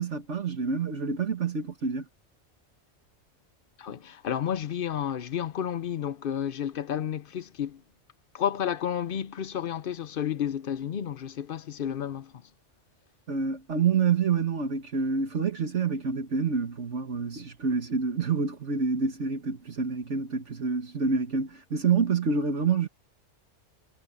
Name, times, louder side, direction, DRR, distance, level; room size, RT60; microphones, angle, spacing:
voice 1, 0.0-2.1 13.3-22.9, right 5 dB, 70° right, 1.9 m, -27 dB
voice 2, 3.8-7.8 8.3-12.3, left 9 dB, 55° left, 0.8 m, -31 dB
omnidirectional pair, 1.2 m